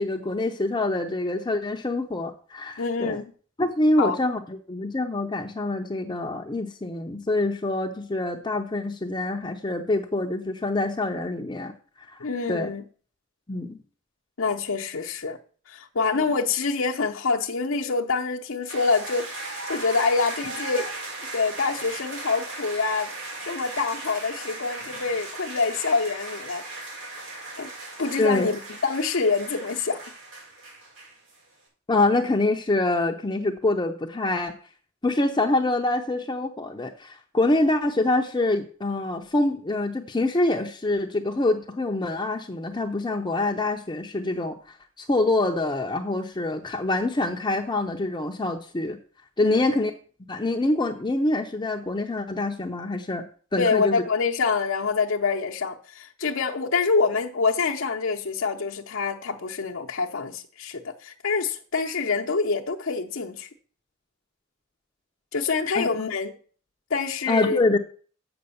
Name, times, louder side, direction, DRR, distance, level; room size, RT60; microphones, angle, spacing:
voice 1, 0.0-3.2 3.6-11.7 12.1-12.7 13.5-13.8 16.1-16.2 28.2-28.5 31.9-34.5 35.0-49.0 49.4-49.9 50.3-53.2 53.5-54.0 65.7-66.0 67.3-67.8, left 2 dB, 20° left, 0.6 m, -25 dB
voice 2, 2.8-3.3 4.0-4.2 12.2-12.8 14.4-15.4 15.7-20.9 21.3-23.1 23.4-26.6 27.6-27.7 28.0-30.0 49.4-49.6 53.6-63.5 65.3-66.3 66.9-67.6, left 4 dB, 70° left, 0.8 m, -26 dB
sound 1, 18.7-31.4, right 2 dB, 80° right, 6.1 m, -37 dB
7.8 x 6.1 x 7.0 m
head